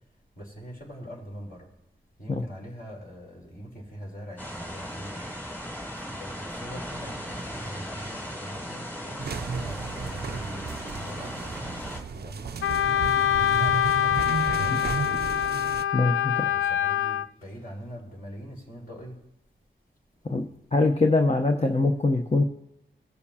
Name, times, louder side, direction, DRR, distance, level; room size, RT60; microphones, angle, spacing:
voice 1, 0.4-1.6 2.2-5.2 6.1-11.6 12.1-14.2 14.5-15.4 16.5-19.2, equal, 50° left, -2 dB, 3.9 m, -42 dB
sound 1, 4.4-12.0, equal, 10° left, 2.5 m, -37 dB
sound 2, 9.2-15.8, right 5 dB, 55° right, 0.5 m, -34 dB
Wind instrument woodwind instrument, 12.6-17.3, left 10 dB, 85° left, 0.4 m, -25 dB
voice 2, 15.9-16.5 20.3-20.4 20.7-22.4, left 3 dB, 30° left, 3 dB, 0.9 m, -23 dB
19.0 x 7.0 x 2.9 m, 0.84 s
cardioid pair, 60°, 20 cm